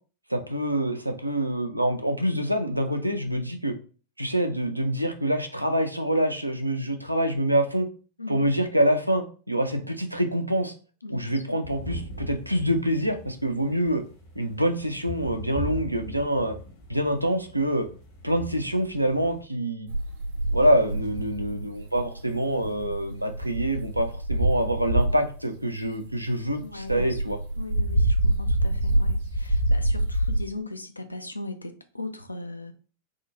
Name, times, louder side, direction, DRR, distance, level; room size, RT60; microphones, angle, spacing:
voice 1, 0.3-3.7 4.2-7.9 8.3-10.7 11.1-14.0 14.4-16.6 16.9-17.9 18.2-19.9 20.5-27.4, right 1 dB, 90° right, 0.4 m, -26 dB
voice 2, 11.0-11.6 26.6-32.7, left 2 dB, 85° left, 0.3 m, -39 dB
sound 1, 11.6-19.4, right 1 dB, 55° left, 1.0 m, -40 dB
sound 2, 19.9-25.4 25.8-30.4, right 1 dB, 70° right, 1.2 m, -26 dB
3.6 x 2.2 x 2.5 m
figure-of-eight pair, 90°, 0 cm